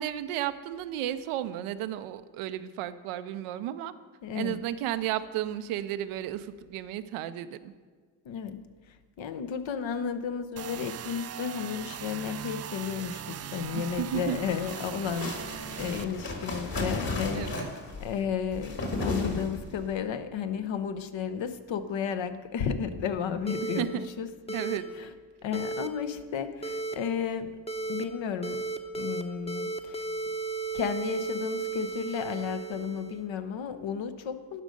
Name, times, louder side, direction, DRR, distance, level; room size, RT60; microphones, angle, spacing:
voice 1, 0.0-3.9 4.3-7.7 13.7-14.4 17.3-17.7 23.8-24.1 24.5-24.9, right 12 dB, 85° right, 12 dB, 0.6 m, -33 dB
voice 2, 4.2-4.6 8.2-8.6 9.2-15.3 15.8-17.5 18.0-24.3 24.9-25.1 25.4-27.6 27.9-28.6 29.0-30.0 30.7-34.6, left 7 dB, 65° left, 10 dB, 0.9 m, -33 dB
sound 1, 10.6-16.0, right 9 dB, 35° right, 0.4 m, -39 dB
sound 2, 13.8-19.9, left 2 dB, 45° left, 2.2 m, -35 dB
sound 3, 23.5-23.8 24.5-24.8 25.5-25.9 26.6-26.9 27.7-28.0 28.4-29.2 29.5-33.2, right 4 dB, 15° left, 0.8 m, -34 dB
12.0 x 5.2 x 5.2 m, 1.6 s
supercardioid pair, 55°, 48 cm